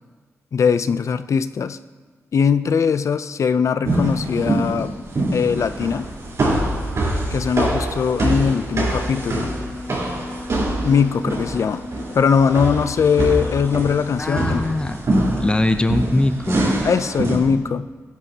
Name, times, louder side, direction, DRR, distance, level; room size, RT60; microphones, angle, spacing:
voice 1, 0.5-1.8 2.3-4.9 5.3-6.1 7.3-9.5 10.8-11.8 12.1-14.7 16.8-17.9, left 6 dB, 65° left, 12 dB, 0.5 m, -20 dB
sound 1, 3.8-17.4, right 2 dB, 65° right, 4.0 m, -24 dB
sound 2, 8.9-14.2, left 2 dB, 45° left, 1.0 m, -36 dB
voice 2, 14.2-16.7, left 2 dB, 15° left, 8 dB, 0.6 m, -21 dB
16.0 x 11.0 x 2.8 m, 1.4 s
cardioid pair, 80°, 6 cm